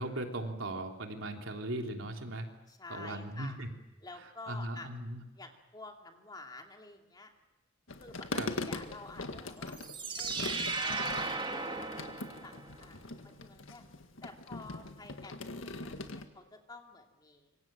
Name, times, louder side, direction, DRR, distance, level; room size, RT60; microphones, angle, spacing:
voice 1, 0.0-2.5 2.9-3.7 4.5-5.2 8.4-8.5, right 1 dB, 80° right, 3 dB, 3.4 m, -38 dB
voice 2, 2.7-3.6 4.0-4.9 5.3-7.3 8.0-9.8 10.2-12.0 12.4-12.5 12.8-13.8 14.2-17.6, left 2 dB, 20° left, 3 dB, 2.7 m, -50 dB
sound 1, 7.9-16.3, left 2 dB, 85° left, 1.9 m, -41 dB
sound 2, 9.7-12.8, right 3 dB, 25° right, 2.3 m, -36 dB
26.5 x 24.0 x 7.6 m, 1.0 s
head